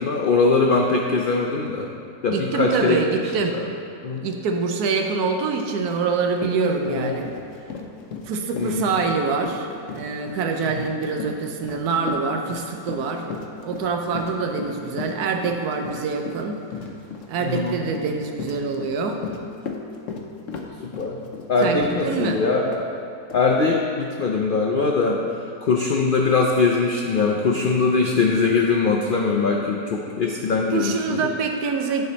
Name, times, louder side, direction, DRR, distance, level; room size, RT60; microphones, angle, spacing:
voice 1, 0.0-1.9 2.2-3.6 4.0-4.2 6.9-7.2 8.5-8.9 10.8-10.9 17.4-17.8 21.0-21.2 21.5-22.9 23.3-25.2 25.6-31.3, left 4 dB, 85° left, 0 dB, 0.4 m, -21 dB
voice 2, 2.3-3.6 4.2-7.3 8.3-9.7 9.9-13.3 13.6-16.6 17.3-19.2 21.6-22.4 30.7-32.0, right 4 dB, 90° right, 4 dB, 1.2 m, -25 dB
Run, 6.0-6.1 6.4-22.3 22.7-22.9 23.3-23.4, left 5 dB, 60° left, 1.0 m, -35 dB
9.9 x 5.1 x 4.0 m, 2.5 s
omnidirectional pair, 1.6 m